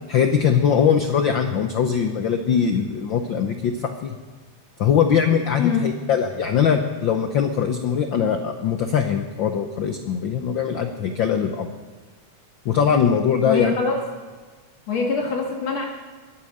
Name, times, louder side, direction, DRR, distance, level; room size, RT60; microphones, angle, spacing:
voice 1, 0.1-4.1 4.8-11.7 12.6-13.7, left 7 dB, 85° left, 5 dB, 1.0 m, -21 dB
voice 2, 13.4-14.0 14.9-15.9, left 5 dB, 65° left, 0 dB, 3.0 m, -23 dB
23.0 x 8.8 x 6.5 m, 1.4 s
omnidirectional pair, 3.3 m